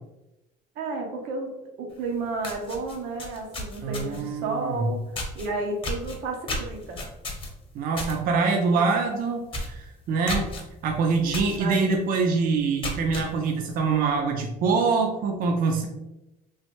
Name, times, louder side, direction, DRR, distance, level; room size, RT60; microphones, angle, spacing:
voice 1, 0.8-1.5 1.8-5.0 5.3-7.0 8.6-8.8 11.6-11.9, right 3 dB, 90° right, 1 dB, 0.7 m, -32 dB
sound 1, 2.0-2.1 2.4-4.3 5.1-5.5 5.8-8.2 8.5-8.8 9.1-9.2 9.5-9.8 10.3-10.6 11.3-11.6 12.0-12.1 12.6-13.3, left 2 dB, 30° left, 0.8 m, -33 dB
voice 2, 3.8-4.9 7.7-10.5 10.8-15.9, right 4 dB, 55° right, 3 dB, 0.4 m, -24 dB
3.1 x 2.0 x 3.0 m, 0.94 s
cardioid pair, 110°, 17 cm